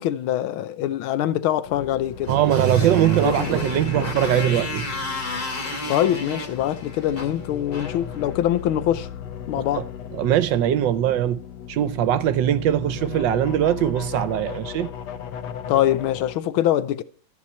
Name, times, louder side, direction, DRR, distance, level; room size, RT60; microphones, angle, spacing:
voice 1, 0.0-2.3 3.2-3.5 5.9-9.1 9.5-9.8 15.7-17.0, left 12 dB, 85° left, 1.6 m, -23 dB
sound 1, 1.6-16.4, left 8 dB, 65° left, 1.3 m, -37 dB
Motorcycle, 2.2-8.7, left 3 dB, 50° left, 2.8 m, -33 dB
voice 2, 2.3-4.9 9.7-9.8 10.1-11.4 11.7-14.9, right 11 dB, 70° right, 1.3 m, -21 dB
sound 2, 6.5-7.7, equal, 25° left, 2.5 m, -44 dB
13.5 x 8.5 x 4.3 m
omnidirectional pair, 2.2 m